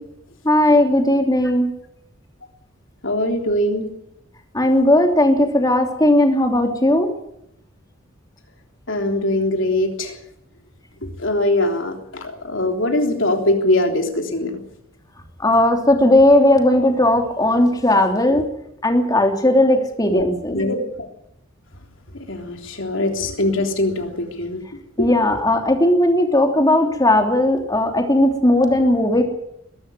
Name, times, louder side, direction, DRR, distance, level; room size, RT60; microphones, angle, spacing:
voice 1, 0.4-1.7 4.5-7.1 15.4-18.4 18.8-20.6 25.0-29.2, left 1 dB, 20° left, 4 dB, 3.0 m, -16 dB
voice 2, 3.0-3.9 8.9-10.1 11.0-14.5 18.3-18.4 20.1-20.8 22.1-24.6 25.0-25.1, left 1 dB, 65° left, 4 dB, 3.5 m, -22 dB
21.5 x 12.5 x 9.6 m, 0.78 s
head